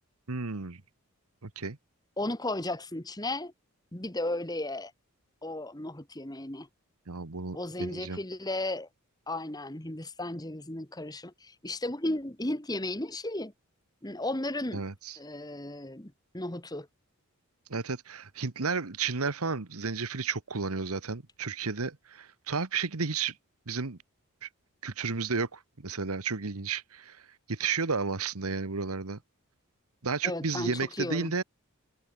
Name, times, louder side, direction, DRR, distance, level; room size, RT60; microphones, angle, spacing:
voice 1, 0.3-0.8 1.4-1.8 7.1-8.2 14.7-15.2 17.7-23.3 23.7-24.0 24.4-24.5 24.8-27.2 27.5-29.2 30.0-31.4, right 4 dB, 80° right, 1.3 m, -32 dB
voice 2, 2.2-3.5 3.9-4.9 5.4-6.7 7.5-8.9 9.3-13.5 14.0-14.8 15.2-16.9 30.2-31.3, left 1 dB, 15° left, 1.7 m, -34 dB
head